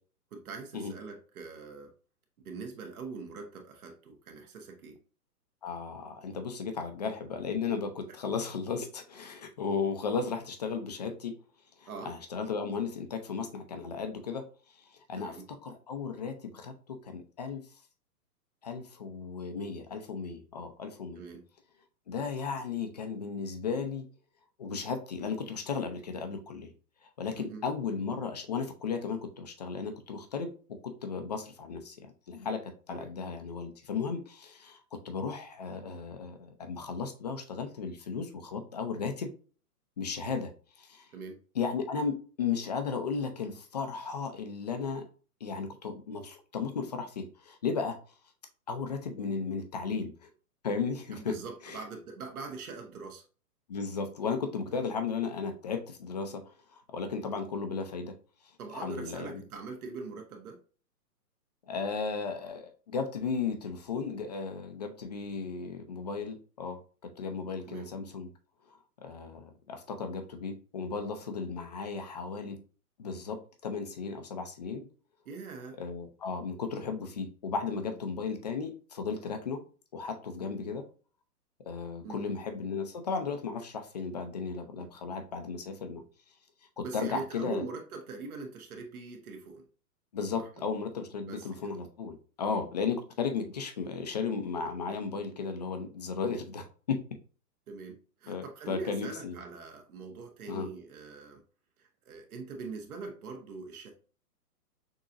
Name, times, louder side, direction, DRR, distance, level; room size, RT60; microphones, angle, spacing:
voice 1, 0.3-1.9 2.4-5.0 11.9-12.1 15.2-15.5 21.1-21.4 27.4-27.6 32.9-33.1 41.1-41.4 51.1-53.2 58.6-60.6 67.6-67.9 75.2-75.8 82.0-82.4 84.8-84.9 86.8-89.7 90.4-90.7 91.3-91.5 97.7-101.4 101.8-103.9, right 4 dB, 60° right, 3 dB, 1.6 m, -42 dB
voice 2, 5.6-11.3 11.8-14.4 14.7-15.4 15.6-17.6 18.6-21.2 22.1-24.0 24.6-26.7 27.0-39.3 40.0-40.5 40.8-41.1 41.5-45.1 45.4-48.0 48.7-50.3 50.6-51.4 51.6-51.8 53.7-58.2 58.7-59.4 61.7-68.3 69.0-72.6 73.0-74.9 75.8-79.6 79.9-80.8 81.7-86.0 86.8-87.6 90.1-97.0 98.3-99.4 100.5-100.7, left 5 dB, 25° left, 6 dB, 0.5 m, -35 dB
6.3 x 2.9 x 2.5 m, 0.37 s
hypercardioid pair, 160°, 48 cm